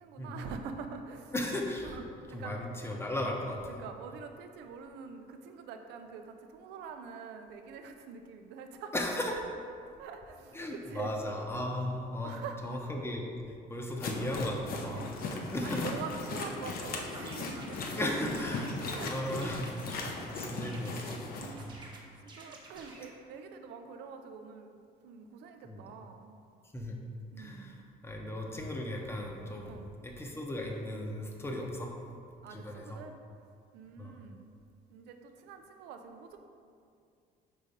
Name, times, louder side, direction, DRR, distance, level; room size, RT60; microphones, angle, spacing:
voice 1, 0.0-1.3 1.8-2.0 2.3-2.6 3.2-3.4 3.7-8.9 10.0-11.1 12.2-12.8 14.9-15.3 15.6-18.4 18.9-19.1 21.3-26.4 27.3-27.9 29.7-29.9 32.4-33.2 33.7-34.5 34.9-36.4, right 5 dB, 90° right, 6 dB, 0.5 m, -45 dB
voice 2, 1.3-2.0 2.3-3.8 8.9-9.3 10.5-12.3 12.6-13.2 13.7-15.8 18.0-18.8 19.0-19.7 20.3-21.8 25.6-25.8 26.7-27.0 27.4-29.8 30.0-31.9 32.5-33.0 34.0-34.2, left 1 dB, 15° left, 0 dB, 0.8 m, -36 dB
sound 1, 14.0-21.5, left 3 dB, 60° left, 0.8 m, -38 dB
sound 2, 17.0-20.2 20.6-21.2 21.6-23.1, right 2 dB, 25° right, 1.1 m, -51 dB
5.1 x 3.7 x 5.4 m, 2.4 s
cardioid pair, 110°, 17 cm